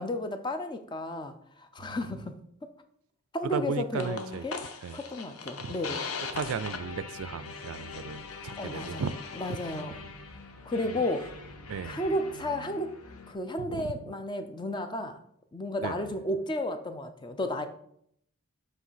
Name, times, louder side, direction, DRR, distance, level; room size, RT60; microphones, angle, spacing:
voice 1, 0.0-1.3 1.6-2.4 3.3-4.6 4.9-6.1 8.6-9.0 9.3-10.0 10.7-11.4 11.8-13.0 13.3-15.2 15.5-17.7, left 1 dB, 20° left, 8 dB, 0.5 m, -33 dB
voice 2, 3.4-4.5 4.8-5.0 5.6-6.0 6.3-9.3 9.9-10.1 10.8-11.0 11.7-12.1 13.6-14.0 15.8-16.0, right 6 dB, 70° right, 15 dB, 0.3 m, -36 dB
sound 1, 4.0-13.3, left 4 dB, 90° left, 0.8 m, -41 dB
7.5 x 3.3 x 5.6 m, 0.68 s
head